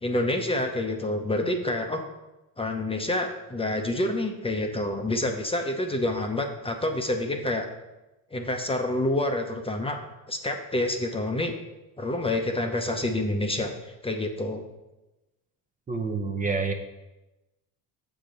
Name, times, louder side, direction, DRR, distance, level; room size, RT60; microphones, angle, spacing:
voice 1, 0.0-2.0 2.6-7.7 8.3-10.0 10.3-11.5 12.0-14.6, left 1 dB, 15° left, 4 dB, 0.7 m, -28 dB
voice 2, 15.9-16.7, right 4 dB, 20° right, 4 dB, 0.7 m, -28 dB
6.9 x 6.8 x 3.9 m, 1.0 s
cardioid pair, 105°, 37 cm